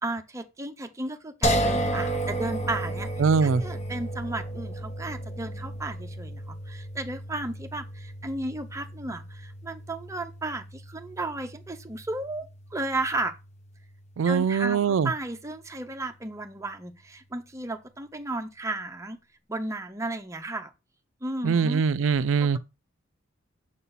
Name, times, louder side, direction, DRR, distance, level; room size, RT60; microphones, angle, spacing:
voice 1, 0.0-3.1 3.4-13.3 14.3-19.2 19.5-20.7 21.2-21.8, right 2 dB, 15° right, 0.6 m, -34 dB
sound 1, 1.4-14.5, right 1 dB, 35° left, 0.9 m, -33 dB
voice 2, 3.2-3.6 14.2-15.1 21.4-22.6, right 5 dB, 75° right, 0.4 m, -22 dB
6.6 x 2.8 x 5.5 m
head